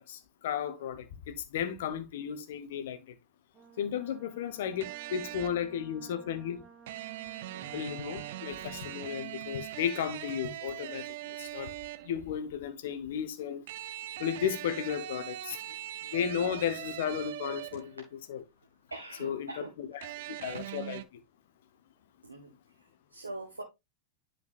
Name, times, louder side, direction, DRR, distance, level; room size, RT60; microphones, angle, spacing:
voice 1, 0.1-3.0 3.8-4.8 5.1-6.6 7.7-11.0 11.4-11.7 12.0-13.6 14.2-15.6 16.1-18.0 18.3-18.4 19.2-19.5 20.0-20.1 20.4-21.0, left 8 dB, 55° left, 1.1 m, -34 dB
Brass instrument, 3.5-9.4, right 6 dB, 15° right, 2.0 m, -55 dB
sound 1, 4.8-5.7 6.9-12.2 13.7-18.0 20.0-21.0, right 14 dB, 55° right, 0.5 m, -41 dB
voice 2, 7.5-7.9 17.7-17.9 18.9-19.7 20.0-20.6 22.3-23.6, right 2 dB, 80° right, 1.3 m, -45 dB
10.5 x 5.2 x 2.5 m
figure-of-eight pair, 90°, 0 cm